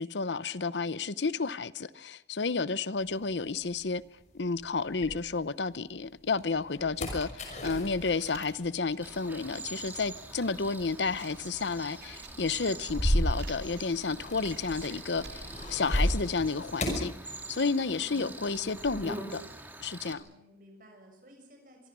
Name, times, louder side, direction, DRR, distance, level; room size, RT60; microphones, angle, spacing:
voice 1, 0.0-4.0 4.3-17.1 17.5-19.4 19.8-20.2, left 4 dB, 90° left, 0.8 m, -31 dB
sound 1, 3.0-5.7 6.2-18.0 18.2-19.0, equal, 40° left, 5.8 m, -35 dB
sound 2, 7.4-15.5, right 5 dB, 75° right, 3.8 m, -53 dB
Cricket, 9.0-20.1, right 2 dB, 10° right, 2.5 m, -45 dB
voice 2, 17.8-18.4 20.0-21.9, equal, 50° right, 6.8 m, -57 dB
25.5 x 24.0 x 6.2 m
head